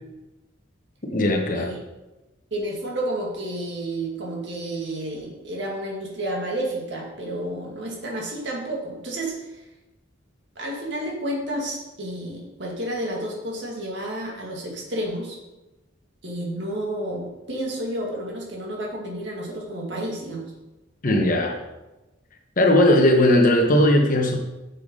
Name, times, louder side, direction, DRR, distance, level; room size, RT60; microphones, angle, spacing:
voice 1, 1.1-1.7 21.0-21.6 22.6-24.4, left 1 dB, 45° left, 3 dB, 1.1 m, -18 dB
voice 2, 2.5-9.6 10.6-15.4 16.2-20.5, right 1 dB, 65° right, -1 dB, 2.1 m, -31 dB
8.0 x 6.8 x 3.8 m, 1.0 s
head